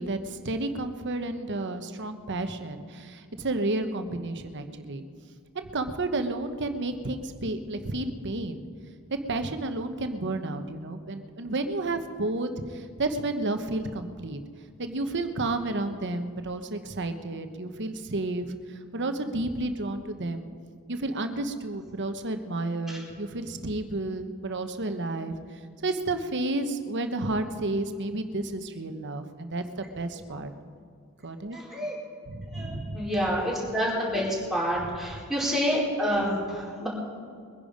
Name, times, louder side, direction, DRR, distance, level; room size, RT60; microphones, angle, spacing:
voice 1, 0.0-5.0 5.5-8.7 9.3-14.4 14.8-18.5 18.9-20.5 20.9-25.3 25.8-30.5 31.2-31.6 32.3-33.1, right 2 dB, 55° right, 8 dB, 1.0 m, -31 dB
voice 2, 31.5-32.0 32.5-36.9, equal, ahead, -6 dB, 4.6 m, -28 dB
22.5 x 10.5 x 5.1 m, 2.2 s
head